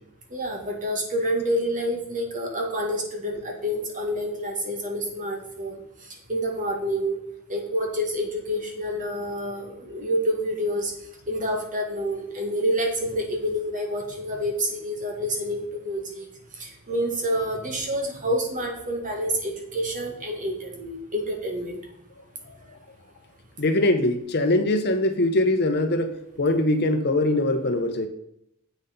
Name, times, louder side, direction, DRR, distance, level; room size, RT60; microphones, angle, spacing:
voice 1, 0.3-5.8 6.3-7.2 7.5-10.9 11.3-16.3 16.6-21.8, equal, 40° right, 1 dB, 2.1 m, -28 dB
voice 2, 23.6-28.1, left 1 dB, 50° left, 8 dB, 0.9 m, -22 dB
8.1 x 6.3 x 5.3 m, 0.77 s
head